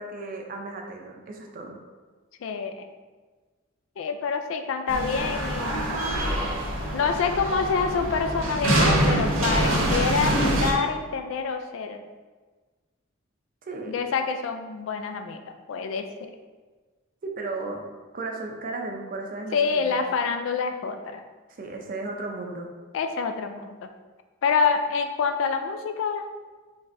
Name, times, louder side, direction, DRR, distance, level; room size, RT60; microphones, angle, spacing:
voice 1, 0.0-1.8 13.6-14.0 17.2-17.9 18.1-20.0 21.5-22.7, right 3 dB, 45° right, 1 dB, 0.5 m, -35 dB
voice 2, 2.4-2.9 4.0-6.0 6.9-12.0 13.9-16.3 19.5-21.2 22.9-23.9 24.4-26.2, left 5 dB, 70° left, 7 dB, 0.3 m, -27 dB
sound 1, 4.9-10.7, right 1 dB, 85° right, 0.9 m, -25 dB
4.1 x 3.3 x 2.5 m, 1.4 s
head